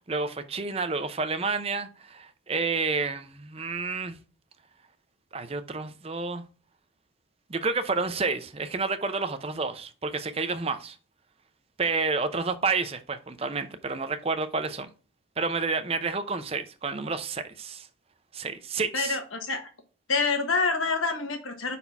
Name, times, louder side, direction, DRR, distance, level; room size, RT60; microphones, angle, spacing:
voice 1, 0.1-4.2 5.3-6.4 7.5-11.0 11.8-14.9 15.4-17.9 18.3-19.2, right 4 dB, 30° right, 0.5 m, -30 dB
voice 2, 18.9-19.7 20.1-21.8, left 4 dB, 80° left, 1.3 m, -27 dB
5.5 x 4.2 x 4.5 m
head